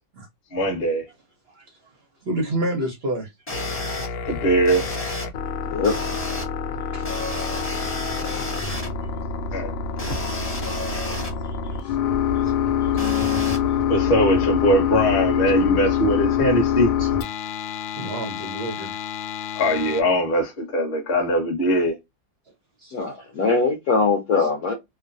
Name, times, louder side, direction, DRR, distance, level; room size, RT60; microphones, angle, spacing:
voice 1, 0.5-1.0 4.2-4.9 9.5-9.7 13.9-16.9 19.5-21.9, equal, 35° left, 1.1 m, -21 dB
voice 2, 1.5-1.8 2.2-3.3 6.9-7.3 7.9-9.1 11.4-12.0 12.3-12.5 12.8-12.9 13.6-13.7 17.9-19.0 22.8-23.3 24.4-24.5, right 1 dB, 65° right, 0.6 m, -31 dB
sound 1, 3.5-20.0, left 8 dB, 85° left, 1.3 m, -26 dB
sound 2, 3.5-4.1 4.6-5.2 5.8-6.4 7.0-8.9 10.0-11.3 13.0-13.6, left 1 dB, 10° left, 0.6 m, -31 dB
voice 3, 22.9-24.7, left 4 dB, 60° left, 1.1 m, -21 dB
3.1 x 2.1 x 2.5 m
omnidirectional pair, 2.0 m